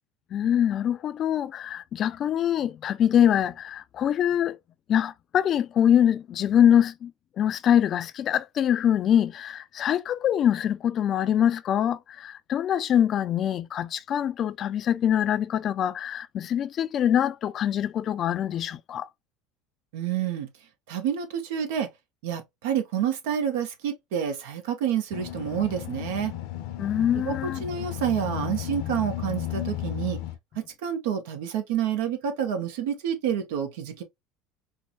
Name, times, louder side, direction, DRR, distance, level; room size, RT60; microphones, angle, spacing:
voice 1, 0.3-4.6 4.9-7.1 7.4-19.1 26.8-27.6, left 9 dB, 50° left, 0.4 m, -24 dB
voice 2, 19.9-20.5 20.9-21.9 22.2-26.3 27.3-30.2 30.5-34.0, right 9 dB, 80° right, 0.9 m, -28 dB
sound 1, 25.1-30.4, left 13 dB, 75° left, 0.7 m, -34 dB
4.5 x 2.1 x 2.9 m
supercardioid pair, 90°, 0 cm